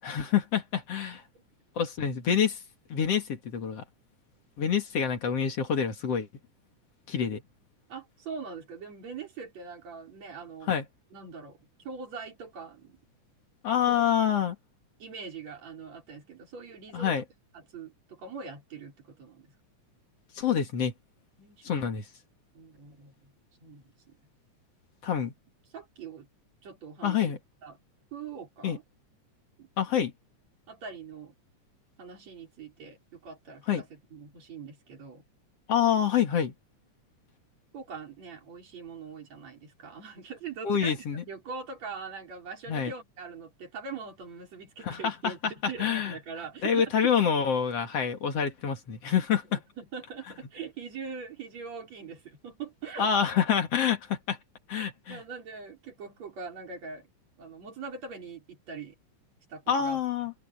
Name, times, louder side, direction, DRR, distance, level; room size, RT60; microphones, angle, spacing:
voice 1, 0.0-1.2 1.8-2.6 2.9-3.8 4.6-6.3 7.1-7.4 10.7-10.8 13.6-14.6 16.9-17.2 20.4-20.9 21.6-22.0 25.0-25.3 27.0-27.4 28.6-28.8 29.8-30.1 33.7-33.8 35.7-36.5 40.6-41.2 42.7-42.9 44.8-45.3 45.8-46.1 46.6-49.6 53.0-54.4 54.7-55.2 59.7-60.3, left 8 dB, 55° left, 3.0 m, -27 dB
voice 2, 7.9-10.7 11.1-11.6 11.8-13.0 13.8-14.0 15.0-17.2 17.5-19.5 21.4-21.9 22.5-23.3 23.6-24.2 25.7-26.3 26.6-27.2 27.6-27.8 28.1-28.8 29.6-29.7 30.7-31.3 32.0-35.2 37.7-40.9 41.2-47.1 49.5-53.1 55.1-57.1 57.4-59.0 59.5-60.0, right 5 dB, 60° right, 6.0 m, -42 dB
omnidirectional pair, 3.4 m